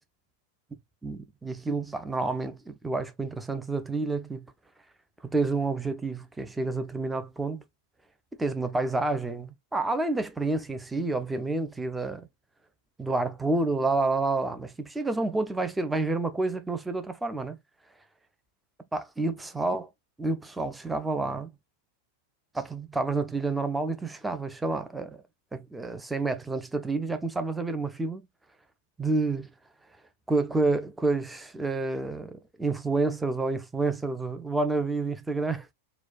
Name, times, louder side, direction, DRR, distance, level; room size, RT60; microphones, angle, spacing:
voice 1, 1.0-4.5 5.2-7.6 8.4-12.3 13.0-17.6 18.9-19.9 20.2-21.5 22.5-25.2 25.5-28.2 29.0-29.5 30.3-35.7, right 3 dB, 10° right, 0.5 m, -29 dB
4.1 x 2.2 x 2.4 m
figure-of-eight pair, 90°, 0 cm